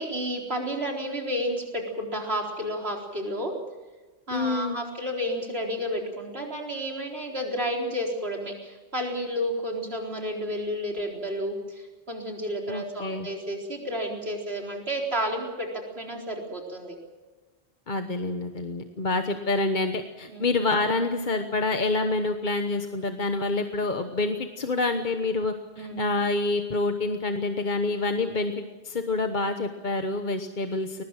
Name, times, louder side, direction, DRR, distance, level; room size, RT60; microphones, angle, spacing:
voice 1, 0.0-3.5 4.3-15.7 16.0-17.0 20.3-20.5 25.8-26.1, equal, 70° right, 0 dB, 4.4 m, -31 dB
voice 2, 4.3-4.9 12.7-13.3 17.9-31.0, left 3 dB, 45° left, 6 dB, 1.3 m, -27 dB
22.0 x 20.0 x 7.5 m, 1.3 s
omnidirectional pair, 1.1 m